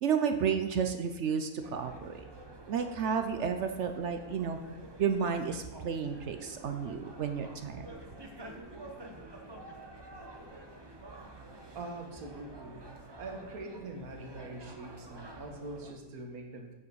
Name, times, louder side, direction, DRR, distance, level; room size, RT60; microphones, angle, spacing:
voice 1, 0.0-2.3 2.7-4.6 5.0-7.9, right 7 dB, 65° right, 7 dB, 0.8 m, -32 dB
sound 1, 1.6-15.9, right 2 dB, 20° right, 0.7 m, -49 dB
voice 2, 11.7-12.8 13.2-16.7, right 2 dB, 85° right, 3 dB, 1.7 m, -43 dB
8.2 x 7.5 x 4.7 m, 1.2 s
omnidirectional pair, 1.5 m